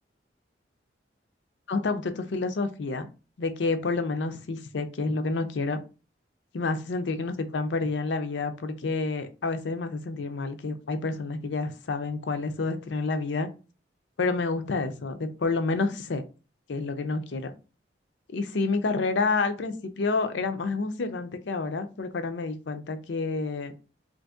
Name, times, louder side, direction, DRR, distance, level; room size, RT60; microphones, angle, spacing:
voice 1, 1.7-3.1 3.4-5.8 6.5-13.5 14.2-16.2 16.7-17.5 18.3-23.7, left 3 dB, 80° left, 0.5 m, -29 dB
2.8 x 2.6 x 3.5 m
head